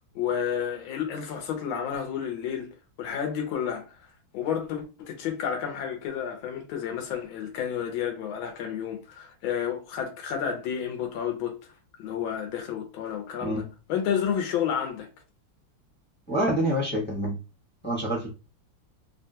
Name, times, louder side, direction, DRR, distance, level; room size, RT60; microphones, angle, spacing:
voice 1, 0.1-4.0 4.3-11.6 12.0-13.6 13.9-15.1, left 8 dB, 85° left, 1.5 m, -31 dB
voice 2, 16.3-17.3 17.8-18.3, right 1 dB, 10° left, 0.7 m, -26 dB
3.5 x 2.3 x 2.7 m
omnidirectional pair, 2.1 m